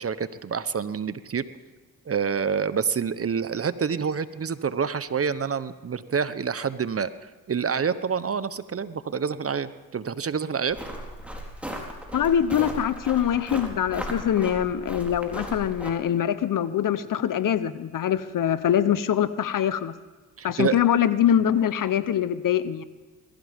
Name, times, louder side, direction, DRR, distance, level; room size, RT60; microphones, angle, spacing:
voice 1, 0.0-1.5 2.1-10.8 20.4-20.8, right 6 dB, 35° right, 14 dB, 1.0 m, -27 dB
Long Walk Gravel Footsteps Slow and Fast, 10.7-15.9, equal, 5° right, 4.1 m, -36 dB
voice 2, 12.1-19.9 20.4-22.8, left 9 dB, 55° left, 14 dB, 1.0 m, -23 dB
21.5 x 15.5 x 3.7 m, 1.3 s
supercardioid pair, 60°, 38 cm